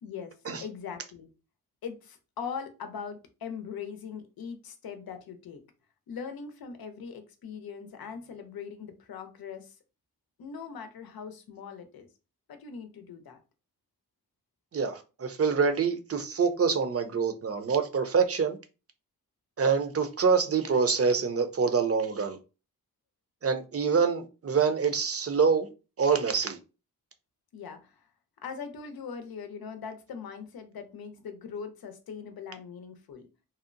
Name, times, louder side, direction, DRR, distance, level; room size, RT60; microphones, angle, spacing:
voice 1, 0.0-1.3 1.8-5.6 6.1-9.8 10.4-12.1 12.5-13.4 27.5-28.1 28.4-33.3, left 6 dB, 85° left, 0.6 m, -41 dB
voice 2, 14.7-18.6 19.6-22.4 23.4-25.7 26.0-26.6, right 5 dB, 40° right, 0.5 m, -26 dB
2.8 x 2.0 x 2.5 m
cardioid pair, 65°, 35 cm